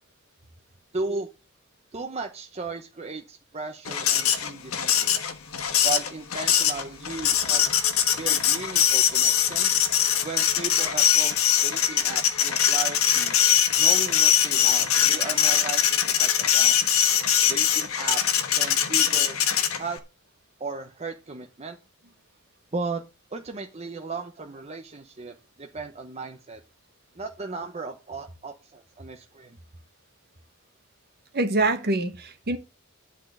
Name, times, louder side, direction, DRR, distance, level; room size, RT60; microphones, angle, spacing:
voice 1, 0.9-1.3 1.9-5.2 5.8-7.6 8.2-9.7 10.2-13.4 13.8-16.8 17.5-19.4 19.8-20.0 20.6-21.8 22.7-23.0 23.3-26.6 27.2-29.6, right 3 dB, 30° right, 0.9 m, -36 dB
Printer, 3.9-20.0, left 9 dB, 70° left, 1.3 m, -22 dB
voice 2, 31.3-32.6, right 2 dB, 50° right, 1.3 m, -25 dB
11.0 x 4.3 x 7.7 m
head